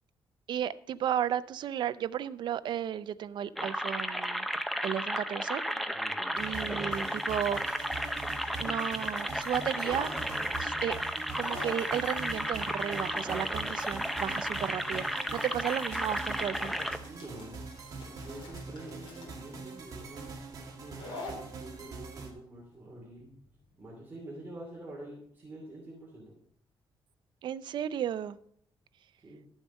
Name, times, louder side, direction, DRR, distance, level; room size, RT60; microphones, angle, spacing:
voice 1, 0.5-4.5 4.8-5.6 6.4-7.6 8.6-10.1 10.6-11.0 11.4-16.7 27.4-28.4, right 10 dB, 60° right, 14 dB, 0.5 m, -34 dB
sound 1, 3.6-17.0, equal, ahead, 0.5 m, -33 dB
sound 2, 6.3-22.3, right 4 dB, 40° right, 1.8 m, -44 dB
sound 3, 10.4-23.8, left 3 dB, 70° left, 3.8 m, -49 dB
voice 2, 17.1-17.6 18.1-20.3 20.7-23.3 23.8-26.4 29.2-29.4, right 1 dB, 20° right, -4 dB, 2.5 m, -46 dB
12.0 x 7.2 x 5.2 m, 0.67 s
cardioid pair, 155°, 9 cm